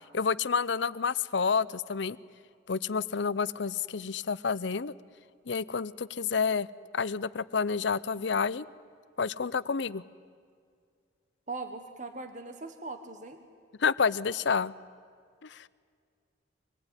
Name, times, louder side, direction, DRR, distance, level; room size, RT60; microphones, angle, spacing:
voice 1, 0.1-2.2 2.7-4.9 5.5-6.7 6.9-8.7 9.2-10.0 13.8-14.7 15.4-15.7, left 5 dB, 70° left, 18 dB, 0.6 m, -29 dB
voice 2, 11.5-13.4, right 3 dB, 40° right, 7 dB, 1.4 m, -40 dB
25.5 x 19.0 x 9.9 m, 2.2 s
head